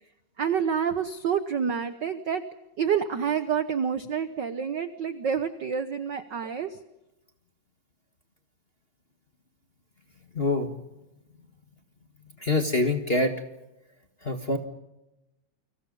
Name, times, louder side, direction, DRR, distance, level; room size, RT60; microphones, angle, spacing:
voice 1, 0.4-2.4 2.8-6.8, right 7 dB, 65° right, 11 dB, 1.1 m, -28 dB
voice 2, 10.3-10.7 12.4-13.4 14.2-14.6, left 2 dB, 25° left, 5 dB, 1.4 m, -25 dB
29.5 x 25.5 x 5.4 m, 0.93 s
omnidirectional pair, 3.4 m